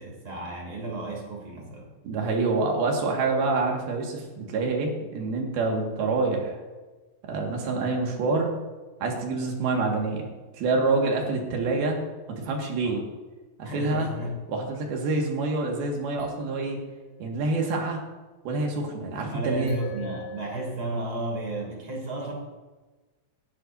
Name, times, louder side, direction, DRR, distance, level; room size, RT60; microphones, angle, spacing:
voice 1, 0.0-1.9 12.8-13.0 13.6-14.4 19.3-22.3, right 1 dB, 35° right, -1 dB, 3.5 m, -33 dB
voice 2, 2.0-6.6 7.2-8.5 9.0-10.3 10.5-12.0 12.3-13.0 13.6-14.1 14.5-16.8 17.2-18.0 18.5-19.8, right 3 dB, 90° right, 1 dB, 3.9 m, -27 dB
sound 1, 16.2-17.6 19.7-20.8, left 2 dB, 70° left, 4.3 m, -41 dB
18.5 x 11.5 x 2.7 m, 1.2 s
omnidirectional pair, 4.2 m